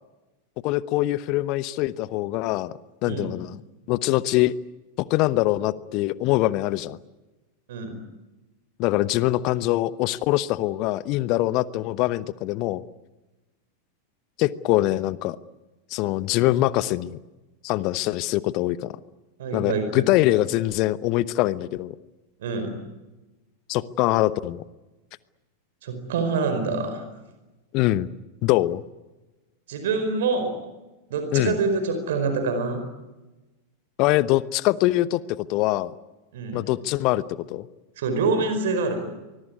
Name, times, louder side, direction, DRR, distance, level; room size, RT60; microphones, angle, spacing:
voice 1, 0.6-2.7 3.0-3.6 3.9-4.6 5.0-7.0 8.8-12.8 14.4-15.4 15.9-17.2 17.6-18.9 19.5-21.9 23.7-24.6 27.7-28.1 28.4-28.8 31.3-31.6 34.0-35.2 35.5-35.9 36.5-37.7, left 16 dB, 40° left, 18 dB, 1.0 m, -23 dB
voice 2, 19.4-19.8 22.4-22.8 25.8-27.0 29.7-30.6 31.1-32.9 36.3-36.6 38.0-39.1, right 4 dB, 55° right, 7 dB, 4.8 m, -26 dB
24.5 x 21.5 x 9.7 m, 1.1 s
figure-of-eight pair, 90°, 0 cm